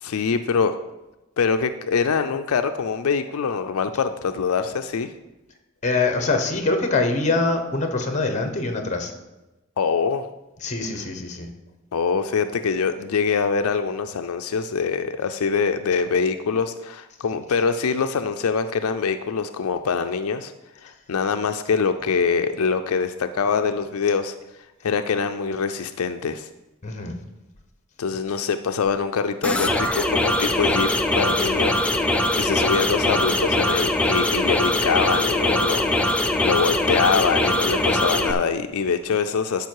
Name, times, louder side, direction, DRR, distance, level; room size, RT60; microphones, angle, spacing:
voice 1, 0.0-0.7 1.4-5.1 9.8-10.3 11.9-20.5 20.8-24.3 24.8-26.5 28.0-30.9 31.2-39.7, left 5 dB, 85° left, 8 dB, 0.5 m, -24 dB
voice 2, 5.8-9.1 10.6-11.5 26.8-27.1, left 3 dB, 35° left, 5 dB, 1.1 m, -24 dB
sound 1, 29.4-38.3, left 1 dB, 5° left, 0.5 m, -22 dB
12.5 x 5.4 x 4.7 m, 1.0 s
head